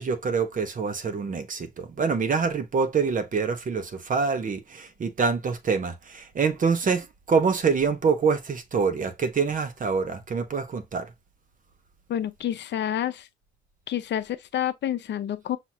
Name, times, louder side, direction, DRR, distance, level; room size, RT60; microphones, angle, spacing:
voice 1, 0.0-11.1, right 5 dB, 40° right, 1.0 m, -26 dB
voice 2, 12.1-13.3 13.9-15.6, left 10 dB, 60° left, 0.6 m, -28 dB
6.0 x 2.8 x 2.8 m
cardioid pair, 90°, 20 cm